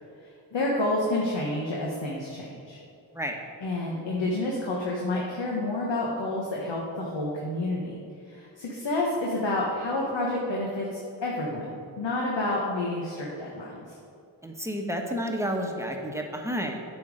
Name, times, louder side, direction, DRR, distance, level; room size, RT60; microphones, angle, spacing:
voice 1, 0.2-2.8 3.6-7.9 8.2-13.9, left 2 dB, 65° left, -3 dB, 1.4 m, -29 dB
voice 2, 14.4-16.8, equal, 5° right, 2 dB, 1.2 m, -30 dB
8.7 x 5.5 x 5.0 m, 2.6 s
cardioid pair, 45°, 47 cm